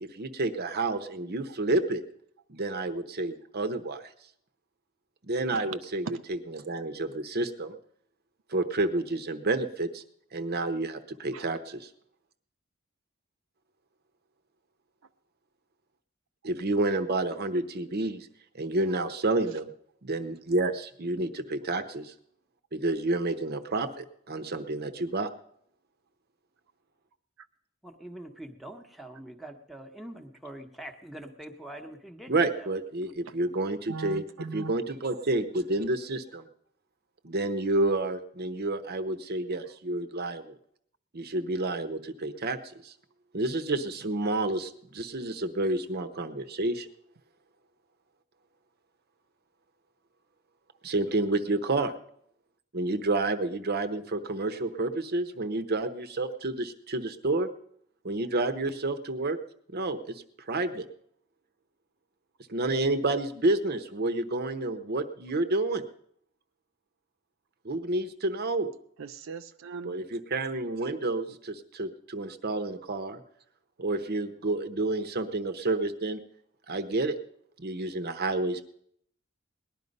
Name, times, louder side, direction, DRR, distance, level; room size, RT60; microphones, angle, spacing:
voice 1, 0.0-2.0 2.5-4.0 5.2-7.8 8.5-10.0 10.3-11.8 16.4-18.3 18.5-19.7 20.0-22.1 22.7-25.3 32.3-34.2 34.5-36.5 37.2-40.5 41.1-42.6 42.8-42.9 43.3-46.9 50.8-51.9 52.7-57.5 58.0-59.4 59.7-60.8 62.5-65.8 67.6-68.7 69.8-73.2 73.8-76.2 76.7-77.2 77.6-78.6, right 2 dB, 50° right, 9 dB, 0.9 m, -29 dB
voice 2, 27.8-32.7, right 1 dB, ahead, 5 dB, 1.0 m, -44 dB
voice 3, 33.9-34.7 69.0-70.0, right 5 dB, 70° right, 10 dB, 0.5 m, -40 dB
18.5 x 11.0 x 5.3 m, 0.69 s
head